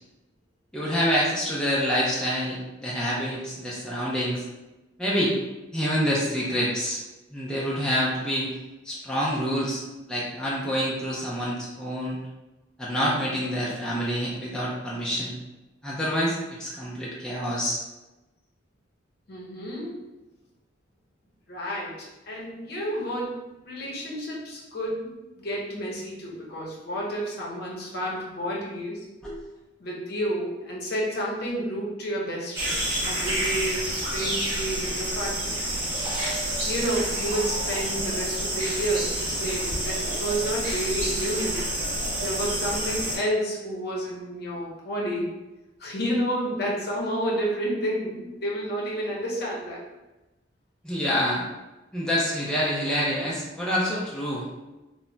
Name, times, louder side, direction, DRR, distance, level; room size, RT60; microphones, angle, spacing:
voice 1, 0.7-4.4 5.0-5.3 5.7-7.0 7.3-8.5 8.8-9.8 10.1-12.2 12.8-15.4 15.8-17.8 29.2-29.4 50.8-51.4 51.9-54.5, equal, 5° left, -7 dB, 0.4 m, -27 dB
voice 2, 19.3-20.0 21.5-23.4 23.6-29.0 29.8-32.7 33.0-35.6 36.6-41.6 42.2-45.3 45.8-49.8, right 1 dB, 55° left, -4 dB, 0.7 m, -30 dB
sound 1, 32.5-43.2, right 1 dB, 50° right, 1.1 m, -28 dB
2.1 x 2.1 x 3.7 m, 1.0 s
head